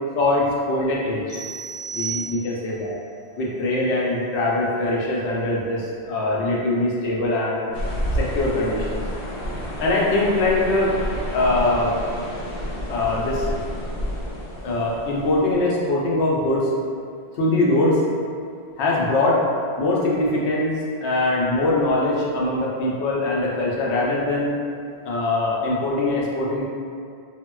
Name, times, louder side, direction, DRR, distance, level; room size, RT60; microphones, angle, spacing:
voice 1, 0.1-1.2 1.9-2.9 3.4-7.6 8.1-9.0 9.8-10.9 11.3-11.9 12.9-13.5 14.6-16.7 17.4-18.0 18.8-19.4 19.8-20.7 21.0-24.5 25.0-26.7, left 2 dB, 85° left, -4 dB, 0.9 m, -22 dB
sound 1, 1.3-2.8, right 6 dB, 55° right, 0.9 m, -33 dB
sound 2, 7.7-15.8, equal, 55° left, 0.7 m, -30 dB
3.5 x 2.2 x 2.2 m, 2.3 s
omnidirectional pair, 1.1 m